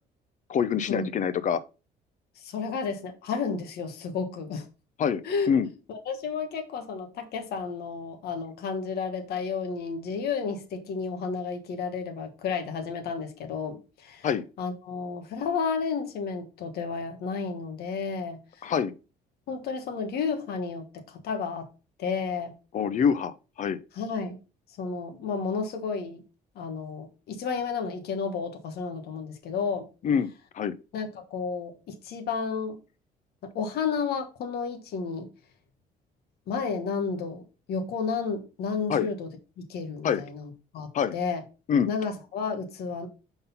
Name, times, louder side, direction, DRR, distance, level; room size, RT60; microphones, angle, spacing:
voice 1, 0.5-1.6 5.0-5.2 5.5-5.7 14.2-14.4 18.6-18.9 22.7-23.8 30.0-30.3 30.5-30.8 38.9-39.1 40.0-40.2 40.9-41.1 41.7-41.9, left 7 dB, 50° left, 0.6 m, -25 dB
voice 2, 2.4-4.6 5.2-5.5 5.9-14.3 14.6-18.7 19.5-21.7 22.0-22.5 23.9-24.4 24.8-26.2 26.5-29.9 30.9-32.8 33.4-35.3 36.5-37.4 37.7-39.3 39.6-41.4 41.9-43.1, left 5 dB, 70° left, 1.3 m, -32 dB
5.6 x 3.9 x 5.4 m
cardioid pair, 110°, 17 cm